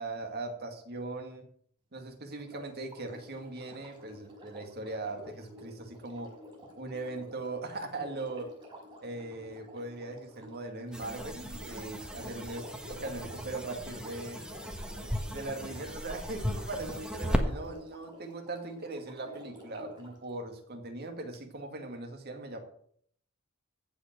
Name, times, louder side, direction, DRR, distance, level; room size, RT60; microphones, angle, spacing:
voice 1, 0.0-1.5 1.9-6.3 6.8-8.5 9.0-12.6 13.0-14.4 15.3-22.6, right 2 dB, 50° right, 4 dB, 2.2 m, -39 dB
Sink (filling or washing), 2.3-20.2 21.3-21.4, left 1 dB, 25° right, 5.7 m, -51 dB
sound 1, 10.9-17.5, equal, 5° right, 1.3 m, -36 dB
15.0 x 5.3 x 7.6 m, 0.64 s
head